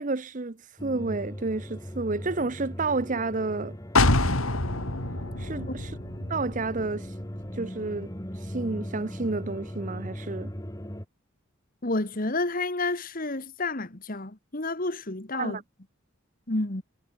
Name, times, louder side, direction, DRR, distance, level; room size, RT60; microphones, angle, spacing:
voice 1, 0.0-3.8 5.4-5.9 6.3-7.1 7.6-8.1 8.5-10.5 15.3-15.6, right 3 dB, 40° right, 0.8 m, -30 dB
sound 1, 0.8-11.0, equal, 15° left, 2.6 m, -38 dB
sound 2, 4.0-7.7 8.1-8.2, left 2 dB, 80° left, 3.9 m, -27 dB
voice 2, 11.8-15.6 16.5-16.8, left 2 dB, 40° left, 1.9 m, -30 dB
head